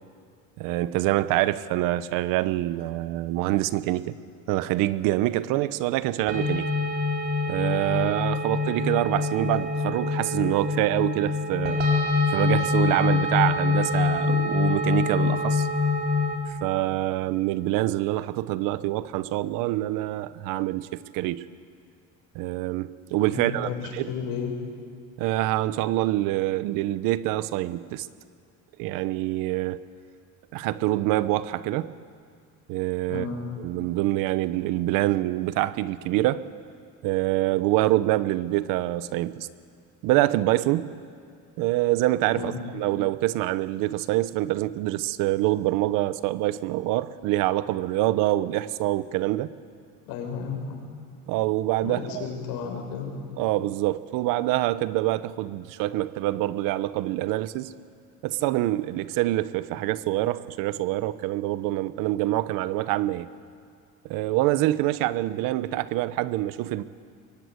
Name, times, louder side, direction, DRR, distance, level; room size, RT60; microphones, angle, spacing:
voice 1, 0.6-4.2 4.5-6.7 7.5-11.8 12.3-15.7 16.5-21.4 22.3-24.1 25.2-28.1 28.8-29.8 30.5-31.9 32.7-33.2 33.6-36.5 37.0-39.5 40.0-40.9 41.6-49.5 51.3-52.2 53.4-57.7 58.2-63.3 64.0-66.8, right 16 dB, 75° right, 1.0 m, -25 dB
sound 1, 6.3-16.4, left 4 dB, 30° right, 4.2 m, -25 dB
voice 2, 23.3-24.5 33.1-33.4 42.3-42.6 50.1-50.8 51.8-53.2, left 6 dB, 80° left, 6.6 m, -33 dB
24.0 x 22.5 x 9.6 m
cardioid pair, 145°, 33 cm